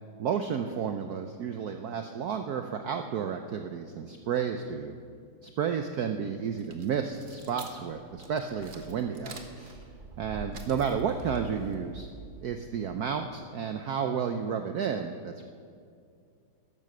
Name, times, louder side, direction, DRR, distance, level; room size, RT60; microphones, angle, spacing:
voice 1, 0.2-5.0 5.4-9.8 10.2-12.1 12.4-15.4, right 7 dB, 75° right, 6 dB, 0.8 m, -32 dB
sound 1, 6.5-13.0, right 3 dB, 35° right, 0.8 m, -45 dB
12.5 x 11.0 x 6.6 m, 2.3 s
omnidirectional pair, 2.4 m